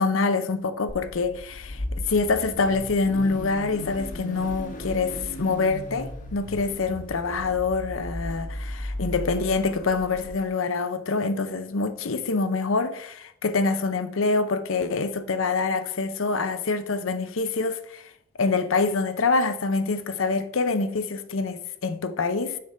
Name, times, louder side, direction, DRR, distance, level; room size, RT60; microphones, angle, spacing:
voice 1, 0.0-18.1 18.4-22.6, left 4 dB, 80° left, 0.7 m, -26 dB
Car / Idling / Accelerating revving vroom, 0.9-10.3, left 1 dB, 40° left, 1.1 m, -36 dB
6.7 x 5.2 x 4.3 m
head